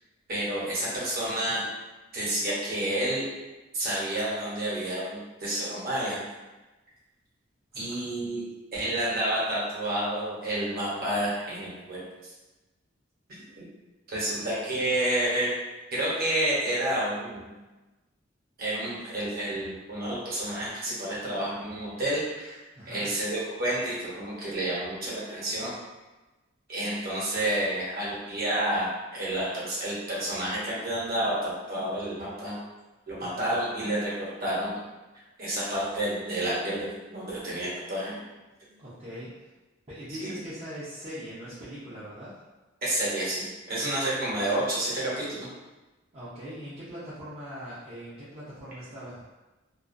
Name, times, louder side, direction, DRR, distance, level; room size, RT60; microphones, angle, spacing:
voice 1, 0.3-1.7 2.1-3.2 3.7-6.2 7.7-8.4 8.7-12.3 13.6-13.7 14.1-15.5 15.9-17.5 18.6-22.6 22.9-25.7 26.7-32.6 33.1-34.8 35.4-38.1 40.1-40.4 42.8-45.5, right 1 dB, 50° right, -7 dB, 0.9 m, -30 dB
voice 2, 7.7-8.1 22.8-23.1 33.2-33.5 38.7-39.3 39.9-42.3 46.1-49.3, equal, 30° right, -12 dB, 0.5 m, -41 dB
2.3 x 2.3 x 2.5 m, 1.1 s
head